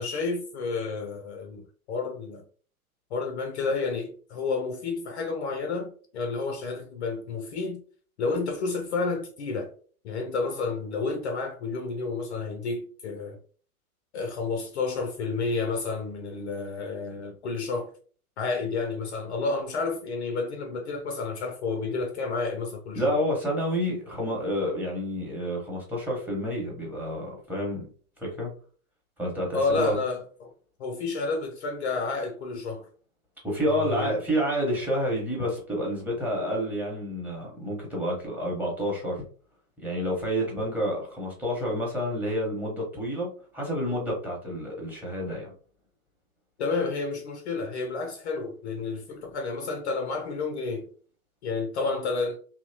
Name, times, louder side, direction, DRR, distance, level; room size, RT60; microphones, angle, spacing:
voice 1, 0.0-2.4 3.1-7.8 8.2-9.7 10.0-13.4 14.1-17.9 18.4-23.2 29.5-30.5 30.8-32.9 33.7-34.2 46.6-50.9 51.4-52.4, left 4 dB, 50° left, 0.5 m, -30 dB
voice 2, 23.0-27.9 28.2-28.5 29.2-29.9 33.4-39.2 39.8-45.5, equal, 5° right, 0.8 m, -29 dB
2.7 x 2.1 x 2.6 m
figure-of-eight pair, 95°, 44 cm